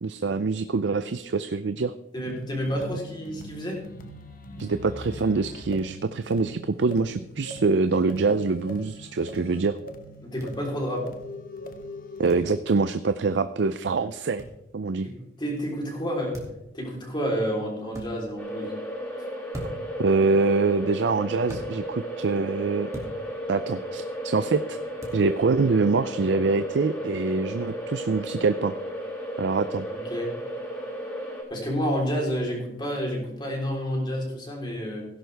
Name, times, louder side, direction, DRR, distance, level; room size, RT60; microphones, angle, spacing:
voice 1, 0.0-1.9 4.6-9.8 12.2-14.4 14.7-15.1 20.0-22.9 23.5-24.8 25.1-28.7 29.4-29.9, right 4 dB, 80° right, 11 dB, 0.5 m, -24 dB
voice 2, 2.1-3.8 10.2-11.1 15.0-16.4 16.7-18.7 29.9-30.3 31.5-35.1, equal, 25° left, -1 dB, 3.7 m, -29 dB
sound 1, 2.2-12.6, equal, 50° left, 1.2 m, -42 dB
sound 2, 10.4-10.5 12.3-12.5 14.4-14.5 16.3-16.6 17.9-18.1 19.5-19.9 21.5-21.7 22.9-23.1 25.0-25.2, equal, 20° right, 2.4 m, -38 dB
sound 3, 18.4-31.4, equal, 10° left, 6.1 m, -34 dB
17.0 x 11.0 x 3.5 m, 0.86 s
head